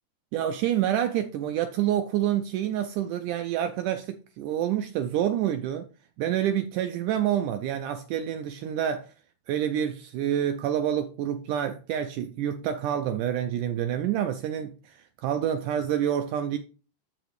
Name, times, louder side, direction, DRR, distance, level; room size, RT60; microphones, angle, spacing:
voice 1, 0.3-5.9 6.2-9.1 9.5-16.6, right 10 dB, 90° right, 1.8 m, -28 dB
13.0 x 4.8 x 3.1 m
omnidirectional pair, 4.3 m